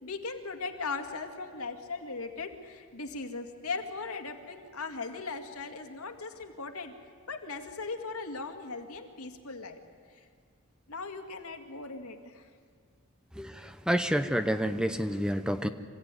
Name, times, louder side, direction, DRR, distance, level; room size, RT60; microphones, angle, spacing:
voice 1, 0.0-6.9 7.3-9.8 10.1-10.3 10.9-12.5, left 4 dB, 85° left, 5 dB, 2.2 m, -38 dB
voice 2, 13.4-15.7, equal, 5° right, 9 dB, 0.7 m, -29 dB
26.0 x 16.0 x 9.7 m, 2.1 s
head